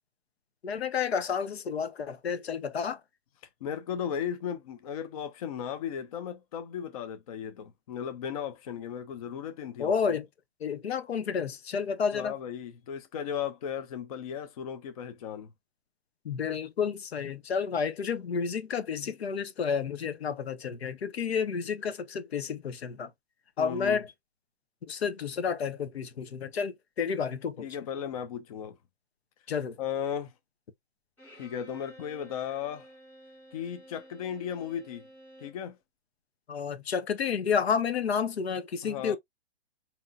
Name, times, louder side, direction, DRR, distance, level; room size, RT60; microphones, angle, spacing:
voice 1, 0.6-3.0 9.8-10.3 10.6-12.4 16.2-23.1 23.6-24.1 24.9-27.7 29.5-29.8 36.5-39.2, left 6 dB, 75° left, 0.9 m, -30 dB
voice 2, 3.6-10.2 12.1-15.5 23.6-24.0 27.6-28.8 29.8-30.3 31.3-32.9 33.5-35.1 35.4-35.8 38.8-39.2, left 8 dB, 35° left, 0.6 m, -36 dB
Bowed string instrument, 31.2-35.7, right 1 dB, 5° left, 2.9 m, -53 dB
5.3 x 2.9 x 2.3 m
hypercardioid pair, 150°, 32 cm